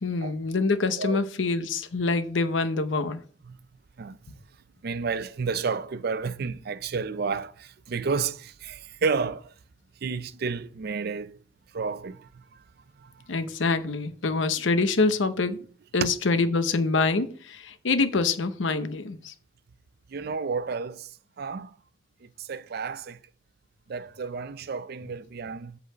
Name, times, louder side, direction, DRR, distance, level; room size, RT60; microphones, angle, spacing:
voice 1, 0.0-3.2 13.3-15.6 15.9-19.3, left 3 dB, 90° left, 0.8 m, -25 dB
voice 2, 4.8-9.5 10.0-11.4 11.7-12.3 13.0-13.1 20.1-21.1 21.4-21.7 22.4-23.2 23.9-25.8, right 5 dB, 55° right, 0.5 m, -31 dB
8.2 x 4.1 x 6.6 m
head